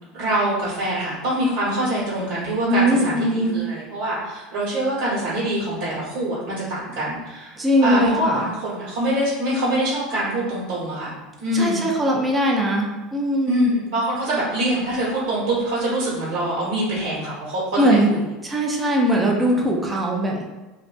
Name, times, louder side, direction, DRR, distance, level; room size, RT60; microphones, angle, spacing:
voice 1, 0.1-11.1 11.4-11.8 13.4-18.2 19.2-19.7, right 1 dB, 65° right, -10 dB, 1.1 m, -24 dB
voice 2, 2.7-3.6 7.6-8.4 11.5-13.7 17.8-18.1 18.4-20.4, equal, 15° right, -1 dB, 0.5 m, -20 dB
2.5 x 2.1 x 2.4 m, 1.2 s
hypercardioid pair, 95°, 0 cm